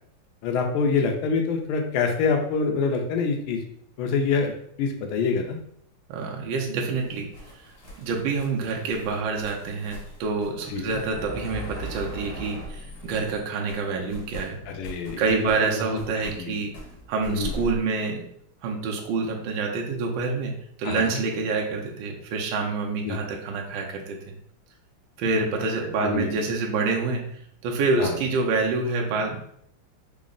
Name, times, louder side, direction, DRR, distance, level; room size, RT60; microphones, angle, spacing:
voice 1, 0.4-3.6 4.0-5.6 10.7-11.0 14.7-15.4 16.4-16.5 17.3-17.6 20.8-21.2 23.0-23.2 26.0-26.3 28.0-28.1, left 5 dB, 75° left, 2 dB, 1.4 m, -26 dB
voice 2, 6.1-7.3 8.0-14.6 15.2-16.8 17.1-18.3 18.6-24.4 25.2-27.2 27.6-29.4, right 4 dB, 75° right, 1 dB, 1.1 m, -27 dB
sound 1, 7.0-13.4 13.7-17.8, equal, 50° left, 1.4 m, -40 dB
3.9 x 2.0 x 3.7 m, 0.68 s
omnidirectional pair, 2.4 m